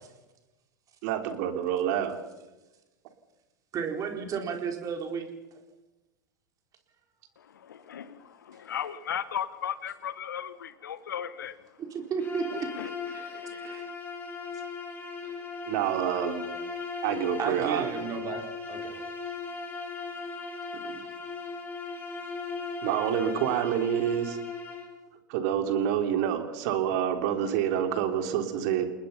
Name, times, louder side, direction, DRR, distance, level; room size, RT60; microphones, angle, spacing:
voice 1, 1.0-2.2 15.7-16.5 17.0-17.9 20.8-21.0 22.8-24.4 25.3-28.9, right 10 dB, 55° right, 7 dB, 3.3 m, -27 dB
voice 2, 3.7-5.3 11.9-13.3 13.6-13.9 17.4-18.4 18.7-19.0, right 6 dB, 35° right, 4 dB, 4.4 m, -33 dB
voice 3, 8.7-11.5, left 9 dB, 75° left, 15 dB, 1.2 m, -34 dB
Bowed string instrument, 12.2-25.0, left 4 dB, 15° left, 6.4 m, -37 dB
29.0 x 20.0 x 5.8 m, 1.1 s
hypercardioid pair, 95°, 11 cm